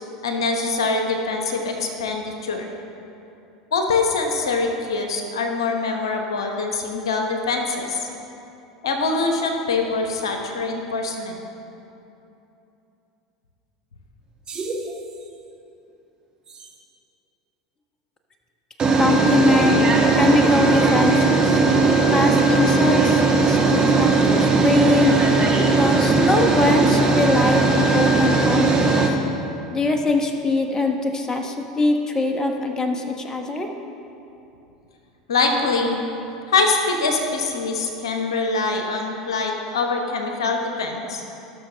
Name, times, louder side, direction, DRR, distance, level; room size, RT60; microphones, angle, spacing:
voice 1, 0.2-2.7 3.7-8.1 8.8-11.4 35.3-36.0 36.5-41.2, left 3 dB, 75° left, 3 dB, 1.1 m, -24 dB
sound 1, 14.5-14.9 16.6-16.7 18.8-29.1, right 3 dB, 30° right, 1.5 m, -18 dB
voice 2, 19.0-19.8 20.1-21.6 22.1-25.2 25.7-29.0 29.7-33.7, left 2 dB, 20° left, 4 dB, 1.1 m, -22 dB
18.0 x 6.4 x 3.4 m, 2.8 s
hypercardioid pair, 80°, 3 cm